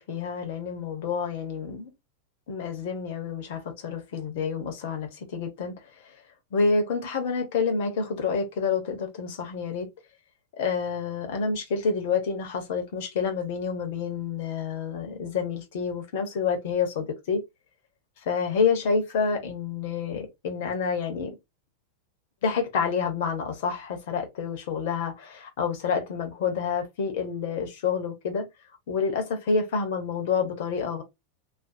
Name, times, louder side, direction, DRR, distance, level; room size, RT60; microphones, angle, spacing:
voice 1, 0.0-1.9 2.5-5.8 6.5-9.9 10.6-17.4 18.3-21.3 22.4-28.5 28.9-31.0, left 5 dB, 50° left, 0.8 m, -28 dB
2.5 x 2.2 x 2.6 m
figure-of-eight pair, 90°, 0 cm